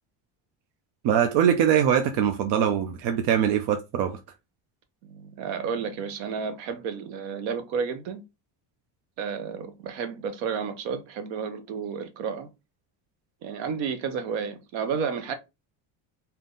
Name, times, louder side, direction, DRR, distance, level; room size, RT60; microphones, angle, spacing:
voice 1, 1.0-4.2, right 9 dB, 65° right, 0.7 m, -22 dB
voice 2, 5.0-8.2 9.2-12.5 13.4-15.3, right 6 dB, 80° right, 1.0 m, -31 dB
3.7 x 2.8 x 3.8 m
cardioid pair, 175°, 45 cm